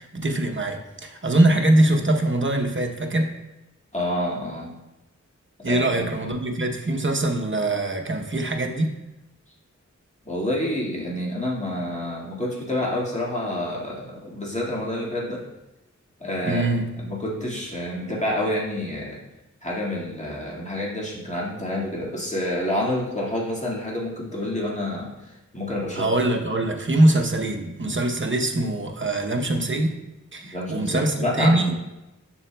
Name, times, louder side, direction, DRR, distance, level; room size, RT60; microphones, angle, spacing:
voice 1, 0.0-3.3 5.6-8.9 16.4-16.9 25.9-29.9 30.3-31.7, right 1 dB, 40° right, 2 dB, 0.8 m, -22 dB
voice 2, 3.9-4.7 5.7-6.0 10.3-15.4 16.2-16.7 17.0-19.2 19.6-26.1 30.4-31.8, left 1 dB, 20° left, -5 dB, 1.8 m, -28 dB
7.1 x 6.7 x 2.2 m, 0.98 s
wide cardioid pair, 45°, 30 cm